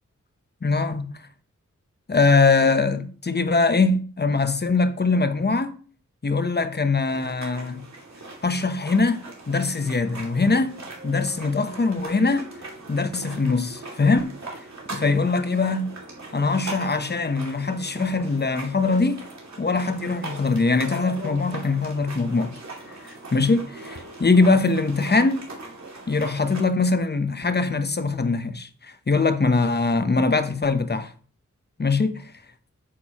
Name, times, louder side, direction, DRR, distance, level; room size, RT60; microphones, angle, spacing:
voice 1, 0.6-1.1 2.1-5.8 6.2-7.9 8.4-10.8 11.0-12.5 12.9-14.3 14.9-15.8 16.3-19.2 19.6-22.6 23.0-25.4 26.1-31.1 31.8-32.3, left 3 dB, 35° left, 0.9 m, -22 dB
sound 1, 7.1-26.7, right 2 dB, 60° right, 2.6 m, -40 dB
8.6 x 6.8 x 3.0 m
cardioid pair, 55°, 31 cm